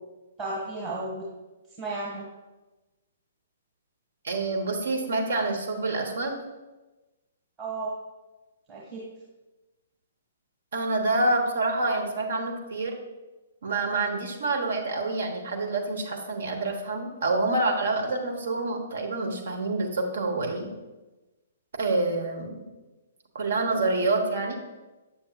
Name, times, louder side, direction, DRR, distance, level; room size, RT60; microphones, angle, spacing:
voice 1, 0.4-1.3 1.8-2.3 7.6-7.9 8.7-9.0, right 2 dB, 25° right, -6 dB, 1.4 m, -33 dB
voice 2, 4.2-6.4 10.7-12.9 13.6-20.7 21.8-22.5 23.3-24.6, right 2 dB, 65° right, 2 dB, 1.1 m, -27 dB
8.0 x 6.9 x 2.3 m, 1.1 s
figure-of-eight pair, 120°, 0 cm